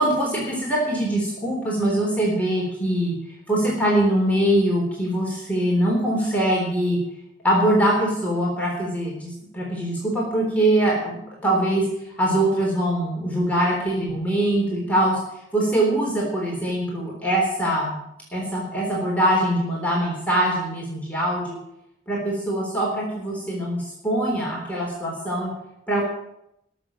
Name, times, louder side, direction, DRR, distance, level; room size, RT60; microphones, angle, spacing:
voice 1, 0.0-3.1 3.5-7.0 7.4-11.8 12.2-15.2 15.5-18.0 18.3-21.6 22.1-25.5 25.9-26.0, right 1 dB, 10° left, -3 dB, 3.6 m, -23 dB
20.5 x 7.0 x 7.4 m, 0.81 s
head